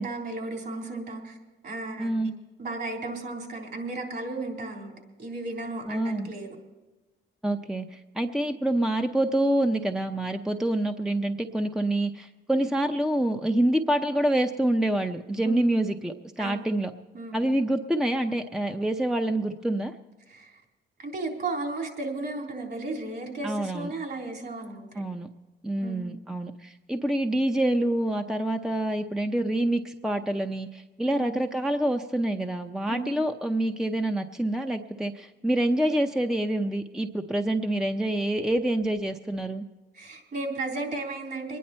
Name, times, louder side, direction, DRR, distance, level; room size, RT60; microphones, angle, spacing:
voice 1, 0.0-1.4 1.6-2.3 2.6-4.9 5.2-6.6 15.4-15.6 16.4-16.6 17.1-17.4 20.3-20.6 21.0-24.9 25.8-26.1 31.1-31.4 32.9-33.1 39.9-41.6, right 2 dB, 55° right, 1 dB, 3.7 m, -34 dB
voice 2, 2.0-2.3 5.9-6.3 7.4-16.9 17.3-19.9 23.4-23.9 24.9-25.3 25.6-39.6, right 1 dB, 5° right, 5 dB, 0.6 m, -27 dB
23.0 x 10.0 x 4.3 m, 1.1 s
cardioid pair, 90°, 20 cm